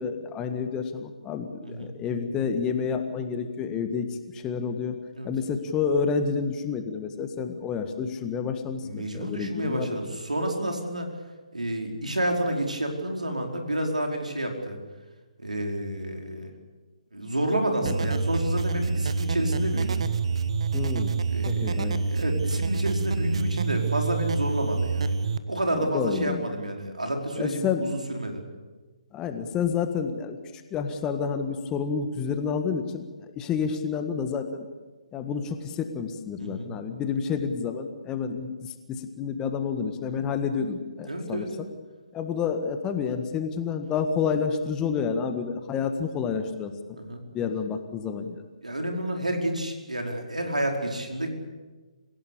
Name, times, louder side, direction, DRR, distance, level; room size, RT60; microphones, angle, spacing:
voice 1, 0.0-4.1 4.3-5.0 5.2-10.0 17.8-17.9 20.7-21.1 21.5-22.0 25.8-26.4 27.4-27.9 29.1-30.4 30.7-33.1 33.3-34.7 35.1-41.7 42.1-46.7 47.3-48.4, left 6 dB, 15° left, 7 dB, 1.7 m, -29 dB
voice 2, 1.6-1.9 5.1-5.3 8.8-11.1 11.5-14.8 15.4-16.5 17.1-20.0 21.3-25.2 25.5-28.4 36.4-36.7 41.1-41.5 47.0-47.2 48.6-51.3, right 1 dB, 85° right, 2 dB, 5.0 m, -29 dB
sound 1, 17.8-25.4, right 4 dB, 55° right, 1.3 m, -27 dB
27.0 x 16.5 x 8.6 m, 1.3 s
figure-of-eight pair, 140°, 4 cm